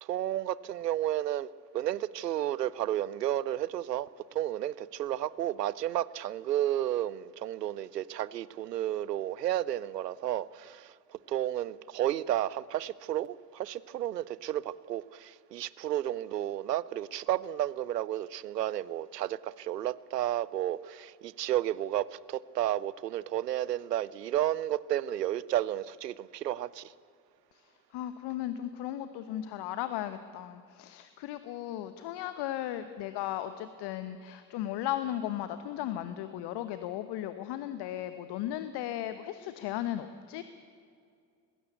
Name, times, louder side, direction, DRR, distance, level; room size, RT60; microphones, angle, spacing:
voice 1, 0.0-1.5 1.7-26.9, right 12 dB, 85° right, 21 dB, 0.6 m, -32 dB
voice 2, 27.5-40.4, left 12 dB, 55° left, 11 dB, 1.1 m, -36 dB
20.5 x 16.5 x 8.2 m, 2.3 s
figure-of-eight pair, 50°, 48 cm